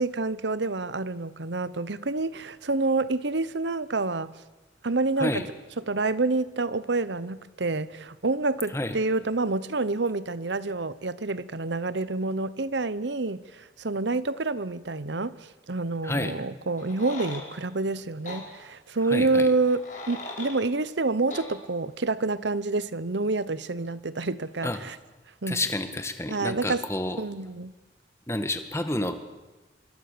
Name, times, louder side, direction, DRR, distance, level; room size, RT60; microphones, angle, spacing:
voice 1, 0.0-4.3 4.8-5.4 5.9-25.0 25.4-25.6 26.3-26.8 27.2-27.7, right 3 dB, 70° right, 0.9 m, -28 dB
voice 2, 16.0-16.4 19.0-19.5 24.6-24.8 25.5-27.2 28.3-29.2, left 1 dB, 15° left, 1.6 m, -29 dB
sound 1, 16.8-17.4 18.3-18.4 19.6-20.6 21.3-21.5, left 2 dB, 45° left, 5.8 m, -38 dB
25.5 x 23.0 x 6.8 m
head